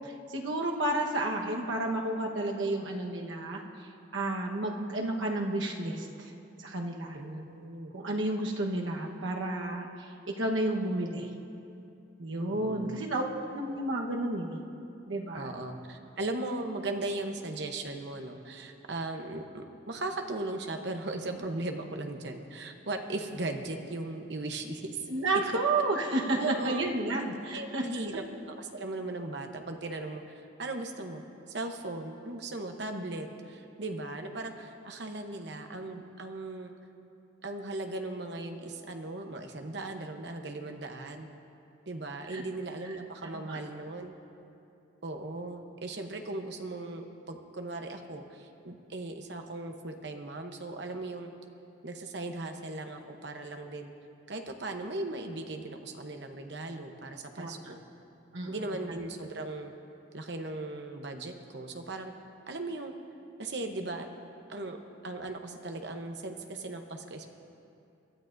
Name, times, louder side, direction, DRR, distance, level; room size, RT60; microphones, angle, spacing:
voice 1, 0.0-3.6 4.1-6.3 6.6-7.2 7.9-10.1 10.4-11.3 12.2-13.2 13.5-14.6 15.1-15.5 25.1-27.8 42.3-42.4 43.3-43.6 57.4-57.6 58.3-58.5, right 2 dB, 75° right, 0 dB, 1.3 m, -31 dB
voice 2, 7.1-7.9 12.5-13.0 15.3-25.0 25.3-25.5 26.4-26.8 27.5-31.2 31.5-36.7 37.4-41.3 41.9-44.1 45.0-51.3 51.8-53.9 54.3-57.8 58.5-59.7 60.1-62.1 62.5-62.9 63.4-64.1 64.5-64.8 65.0-67.3, right 2 dB, 60° right, 5 dB, 0.9 m, -38 dB
24.5 x 12.5 x 2.6 m, 2.7 s
head